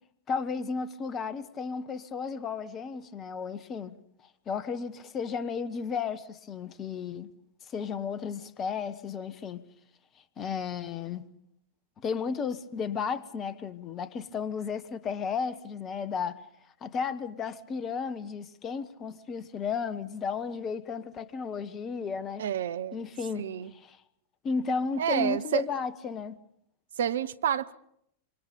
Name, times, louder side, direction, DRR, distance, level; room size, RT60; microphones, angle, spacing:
voice 1, 0.3-4.0 4.5-7.3 7.7-9.6 10.4-11.3 12.0-16.4 16.8-22.4 22.9-24.0 24.4-26.4, left 5 dB, 30° left, 1.4 m, -33 dB
voice 2, 22.4-23.0 23.4-23.7 25.0-25.6 27.0-27.7, right 9 dB, 60° right, 0.9 m, -29 dB
26.5 x 25.5 x 5.3 m
figure-of-eight pair, 90°, 0 cm